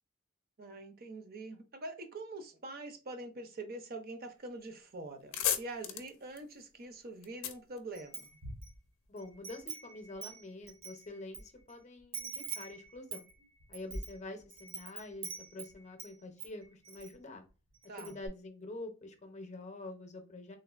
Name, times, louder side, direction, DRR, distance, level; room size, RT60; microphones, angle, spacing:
voice 1, 0.6-8.2 17.9-18.2, right 2 dB, 50° right, 0.6 m, -45 dB
sound 1, 4.6-4.7 5.0-8.6, left 10 dB, 85° left, 0.5 m, -37 dB
Wind chime, 8.0-8.8 9.2-11.4 11.7-11.8 12.1-16.1 16.4-17.1 17.5-17.6 17.8-18.3, right 4 dB, 85° right, 1.0 m, -44 dB
voice 2, 9.1-13.2 13.7-17.4 17.9-20.6, left 2 dB, 35° left, 0.6 m, -46 dB
3.4 x 2.4 x 2.4 m
head